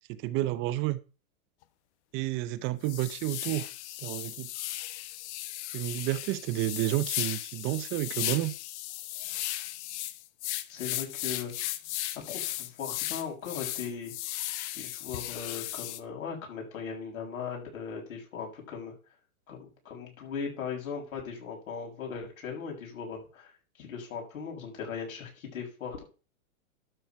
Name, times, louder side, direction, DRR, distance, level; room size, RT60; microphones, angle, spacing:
voice 1, 0.1-1.0 2.1-3.7 4.0-4.5 5.7-8.5, right 16 dB, 30° right, 0.7 m, -30 dB
sound 1, 1.6-1.7 2.2-2.4 2.8-16.0, left 15 dB, 50° left, 1.0 m, -36 dB
voice 2, 10.7-11.5 12.3-14.1 14.7-18.9 19.5-23.5 23.8-26.0, left 6 dB, 75° left, 6.9 m, -38 dB
12.0 x 4.9 x 5.8 m
hypercardioid pair, 140°, 43 cm